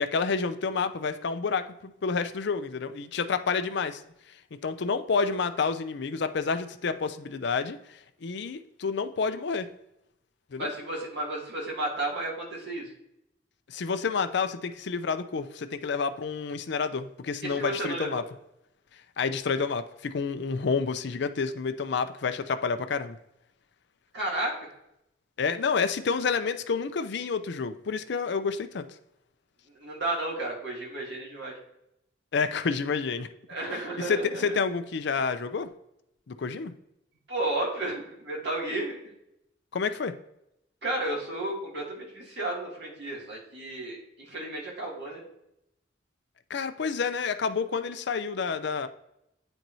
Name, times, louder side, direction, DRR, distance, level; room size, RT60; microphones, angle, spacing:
voice 1, 0.0-4.0 4.6-7.8 8.2-9.7 10.5-10.7 13.7-18.2 19.2-23.2 25.4-28.8 32.3-33.3 34.0-35.7 36.3-36.7 39.7-40.1 46.5-48.9, left 5 dB, 65° left, 10 dB, 0.5 m, -29 dB
voice 2, 10.6-12.9 17.4-18.2 24.1-24.6 29.8-31.6 33.5-34.6 37.3-39.0 40.8-45.2, right 2 dB, 65° right, -3 dB, 2.3 m, -32 dB
8.8 x 4.5 x 2.7 m, 0.82 s
head